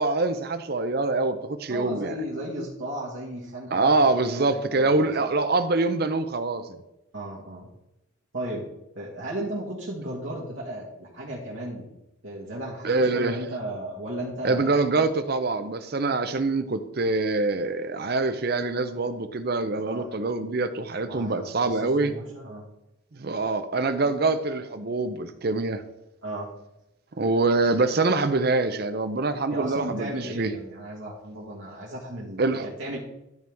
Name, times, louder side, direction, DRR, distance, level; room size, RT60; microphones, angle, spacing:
voice 1, 0.0-2.1 3.7-6.6 12.8-13.4 14.4-22.1 23.1-25.8 27.2-30.5 32.4-32.7, right 3 dB, 50° right, 11 dB, 0.6 m, -25 dB
voice 2, 1.7-5.3 7.1-7.7 8.3-8.7 8.9-11.9 12.2-14.7 19.9-20.1 21.0-22.7 26.2-26.5 29.5-33.0, right 1 dB, 75° right, -5 dB, 1.6 m, -35 dB
12.0 x 4.6 x 3.5 m, 0.90 s
head